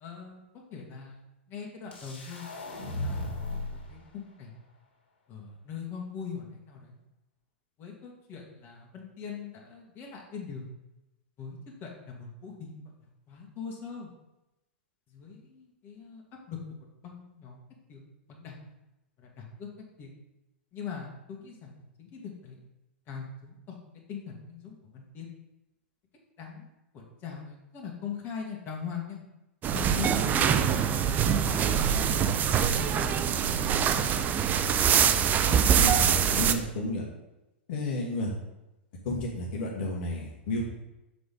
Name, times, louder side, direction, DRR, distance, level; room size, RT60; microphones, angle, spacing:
voice 1, 0.0-0.4 0.7-1.2 1.5-2.5 3.0-3.2 3.9-4.5 5.3-6.8 7.8-10.6 11.4-11.6 11.8-12.7 13.3-14.1 15.1-15.4 15.8-16.2 16.5-16.6 17.0-17.6 17.9-18.0 18.3-18.5 19.4-19.7 20.0-20.1 20.7-21.7 22.0-22.6 23.1-23.8 24.1-25.3 26.4-26.6 26.9-29.2 29.7-30.5 31.3-32.1 32.7-33.1, left 6 dB, 35° left, -1 dB, 1.9 m, -41 dB
sound 1, 1.9-3.9, left 2 dB, 75° left, 1.9 m, -35 dB
sound 2, 29.6-36.5, right 8 dB, 30° right, 0.5 m, -24 dB
voice 2, 35.8-37.0 37.7-38.3 39.0-40.6, left 1 dB, 55° left, -2 dB, 1.6 m, -32 dB
6.9 x 3.9 x 5.3 m, 0.95 s
hypercardioid pair, 110°, 6 cm